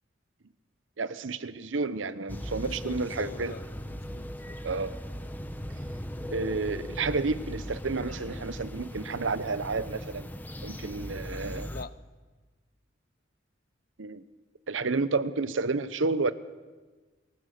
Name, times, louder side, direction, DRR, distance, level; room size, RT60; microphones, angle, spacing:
voice 1, 1.0-3.5 4.6-4.9 6.3-10.3 10.6-11.7 14.0-14.2 14.7-16.3, right 3 dB, 85° right, 14 dB, 0.8 m, -30 dB
sound 1, 2.3-11.8, equal, 10° left, 0.8 m, -38 dB
voice 2, 2.6-4.6 11.7-12.0, left 4 dB, 50° left, 17 dB, 0.5 m, -44 dB
22.0 x 18.5 x 6.7 m, 1.3 s
head